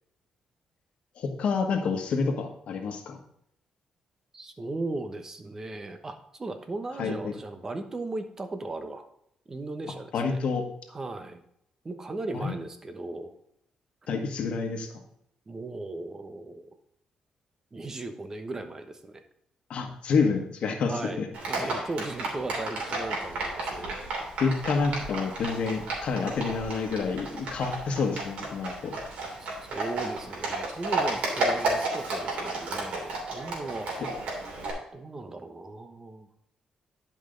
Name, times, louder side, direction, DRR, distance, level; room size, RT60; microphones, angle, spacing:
voice 1, 1.2-3.2 7.0-7.3 10.1-10.6 12.3-12.5 14.1-14.9 19.7-21.3 21.6-21.9 24.4-28.9, left 5 dB, 60° left, 4 dB, 1.4 m, -28 dB
voice 2, 4.3-9.0 9.5-10.4 10.9-11.4 11.8-13.3 15.5-16.7 17.7-19.2 20.8-24.0 29.4-33.9 34.9-36.3, right 2 dB, 25° right, 7 dB, 1.0 m, -37 dB
Livestock farm animals working animals, 21.3-34.7, right 2 dB, 75° right, 2.9 m, -32 dB
10.5 x 5.4 x 3.9 m, 0.74 s
cardioid pair, 120°, 2 cm